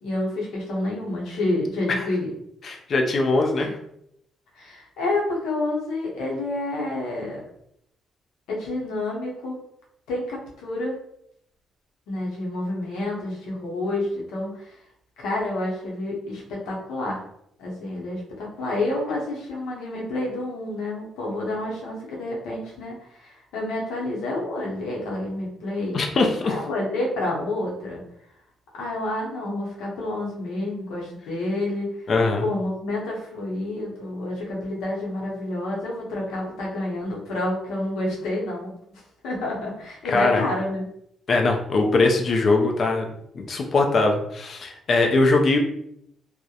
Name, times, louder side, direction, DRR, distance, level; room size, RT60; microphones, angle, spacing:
voice 1, 0.0-2.3 3.6-3.7 4.6-7.4 8.5-9.6 10.1-11.0 12.1-14.8 15.2-17.2 17.6-26.0 26.4-28.0 28.7-31.9 32.4-40.8, left 2 dB, 90° left, -3 dB, 0.7 m, -29 dB
voice 2, 2.6-3.7 25.9-26.5 32.1-32.4 40.0-40.4 41.3-43.1 43.3-45.6, left 3 dB, 50° left, 3 dB, 0.4 m, -21 dB
2.3 x 2.0 x 2.8 m, 0.75 s
cardioid pair, 90°, 0 cm